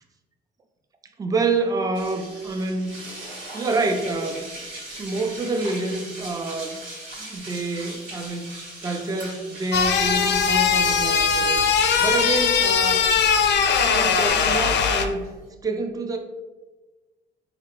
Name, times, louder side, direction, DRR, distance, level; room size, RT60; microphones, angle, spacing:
voice 1, 1.2-2.9 3.5-4.5 5.0-6.8 7.2-11.6 12.0-13.1 13.8-15.3 15.6-16.2, right 3 dB, 20° right, 5 dB, 0.4 m, -27 dB
sound 1, 1.9-15.5, right 1 dB, 90° right, 1.3 m, -40 dB
Chink clink, 9.2-9.5 11.6-11.9 13.6-13.9, right 6 dB, 70° right, 0.5 m, -42 dB
sound 2, 9.7-15.0, left 6 dB, 60° left, 0.4 m, -20 dB
3.6 x 2.4 x 3.1 m, 1.2 s
cardioid pair, 90°, 20 cm